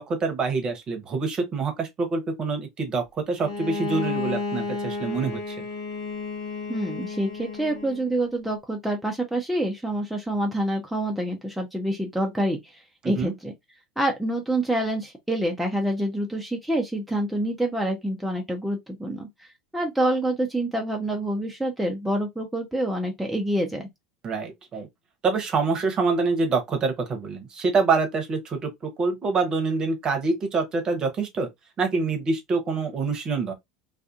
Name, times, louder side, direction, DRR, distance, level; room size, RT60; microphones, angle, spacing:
voice 1, 0.0-5.7 13.0-13.3 24.2-24.9 25.2-31.5 31.8-33.5, right 4 dB, 35° right, 0.9 m, -26 dB
Bowed string instrument, 3.4-8.1, left 3 dB, 65° left, 0.9 m, -32 dB
voice 2, 6.7-13.5 14.0-19.5 19.7-23.8, right 1 dB, ahead, 0.6 m, -27 dB
2.4 x 2.4 x 2.4 m
hypercardioid pair, 80°, 2 cm